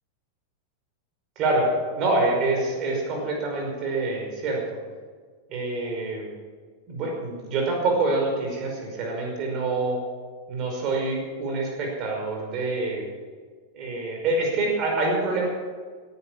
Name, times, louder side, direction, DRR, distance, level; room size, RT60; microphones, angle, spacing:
voice 1, 1.4-1.7 2.0-4.8 5.5-6.3 6.9-10.0 10.5-13.1 13.7-15.5, right 2 dB, 35° right, 0 dB, 5.3 m, -26 dB
17.5 x 10.0 x 6.2 m, 1.5 s
figure-of-eight pair, 90°, 0 cm